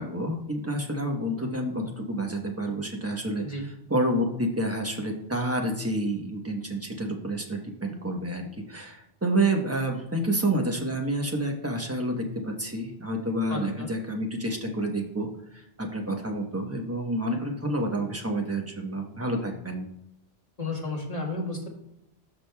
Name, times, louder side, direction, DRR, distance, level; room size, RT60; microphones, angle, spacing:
voice 1, 0.0-19.9, right 1 dB, 15° right, 2 dB, 1.0 m, -29 dB
voice 2, 13.5-13.9 20.6-21.7, left 2 dB, 40° left, -1 dB, 1.6 m, -32 dB
13.0 x 5.0 x 2.3 m, 0.80 s
omnidirectional pair, 1.1 m